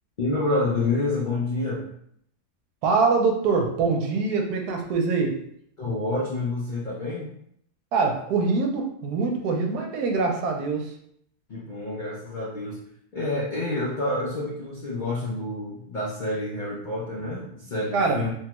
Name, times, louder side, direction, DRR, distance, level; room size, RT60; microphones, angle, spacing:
voice 1, 0.2-1.8 5.8-7.3 11.5-12.8 13.1-18.3, left 2 dB, 70° left, -6 dB, 0.4 m, -28 dB
voice 2, 2.8-5.4 7.9-10.9 17.9-18.2, right 4 dB, 80° right, 2 dB, 1.1 m, -24 dB
3.1 x 2.3 x 2.9 m, 0.69 s
omnidirectional pair, 1.7 m